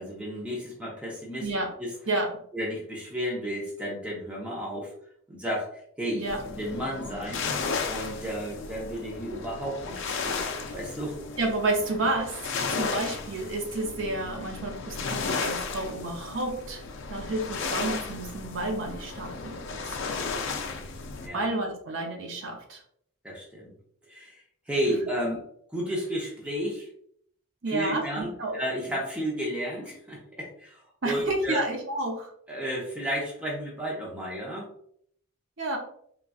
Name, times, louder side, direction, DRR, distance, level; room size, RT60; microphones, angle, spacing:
voice 1, 0.0-1.9 2.5-4.9 5.3-5.7 6.0-7.4 7.9-11.2 12.6-12.8 21.2-21.5 23.2-23.7 24.1-24.4 24.7-25.4 25.7-26.9 27.7-31.6 32.5-34.7, equal, 5° right, -4 dB, 0.7 m, -32 dB
sound 1, 6.3-21.3, left 4 dB, 60° left, 0.4 m, -34 dB
voice 2, 11.4-12.3 12.7-16.8 17.1-19.9 21.3-22.8 24.9-25.0 25.2-25.3 27.6-28.6 31.0-32.3 35.6-35.8, right 2 dB, 60° right, 1 dB, 0.6 m, -30 dB
3.9 x 2.3 x 2.3 m, 0.66 s
head